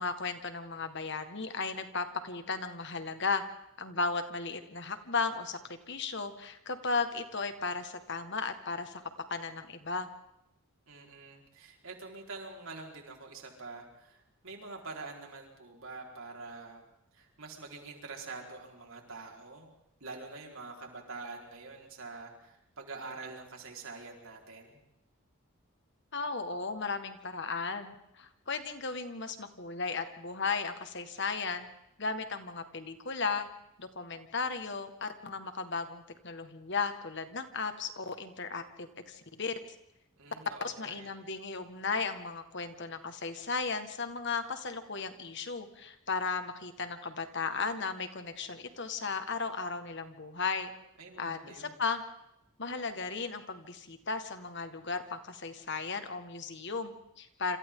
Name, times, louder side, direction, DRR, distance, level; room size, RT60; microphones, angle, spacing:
voice 1, 0.0-3.4 3.8-5.6 5.9-9.0 9.3-10.1 26.1-31.7 32.0-33.5 33.8-39.5 40.6-50.7 51.2-52.0 52.6-57.6, left 4 dB, 55° left, 8 dB, 1.8 m, -35 dB
voice 2, 10.9-16.8 17.1-19.7 20.0-24.8 40.2-41.1 51.0-51.8, right 3 dB, 70° right, 1 dB, 4.7 m, -46 dB
27.5 x 27.0 x 3.9 m, 0.83 s
head